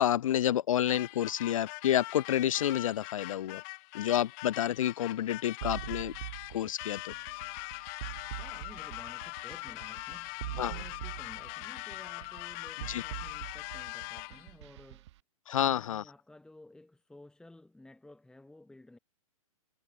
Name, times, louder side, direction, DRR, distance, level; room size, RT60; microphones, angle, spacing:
voice 1, 0.0-3.6 3.9-6.1 6.5-7.1 10.6-10.8 12.9-13.0 15.5-16.0, left 11 dB, 65° left, 0.5 m, -29 dB
sound 1, 0.9-14.5, left 40 dB or more, 35° left, 1.0 m, -42 dB
sound 2, 5.6-15.1, right 16 dB, 50° right, 2.3 m, -43 dB
voice 2, 8.4-15.1 15.6-19.0, left 2 dB, 5° left, 3.9 m, -54 dB
hypercardioid pair, 125°, 18 cm